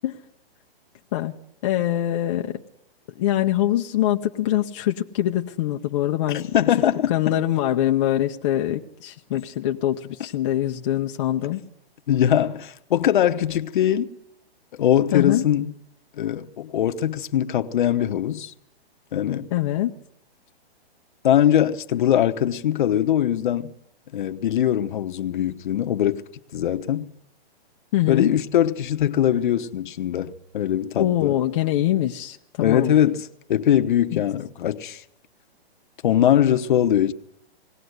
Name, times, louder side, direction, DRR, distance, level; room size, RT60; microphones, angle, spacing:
voice 1, 1.6-2.6 3.2-6.5 7.1-11.6 15.1-15.4 19.5-19.9 27.9-28.3 31.0-32.9 34.1-34.2, left 13 dB, 30° left, 0.7 m, -23 dB
voice 2, 6.3-7.4 12.1-14.1 14.8-15.7 16.2-18.5 19.1-19.5 21.2-23.7 24.1-26.2 26.5-27.1 28.1-31.3 32.6-35.0 36.0-37.1, left 10 dB, 50° left, 1.1 m, -21 dB
21.0 x 17.5 x 8.0 m
hypercardioid pair, 155°, 31 cm